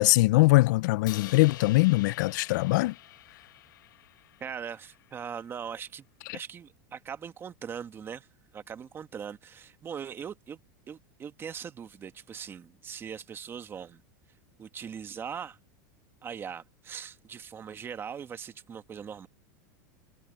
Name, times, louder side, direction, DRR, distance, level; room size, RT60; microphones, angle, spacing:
voice 1, 0.0-2.9, left 21 dB, 65° left, 0.4 m, -22 dB
Crash cymbal, 1.1-5.3, left 15 dB, 85° left, 1.6 m, -47 dB
voice 2, 4.4-6.1 6.3-8.3 8.5-10.6 10.9-14.0 14.6-15.6 16.2-19.3, right 7 dB, 20° right, 1.5 m, -40 dB
supercardioid pair, 145°, 10 cm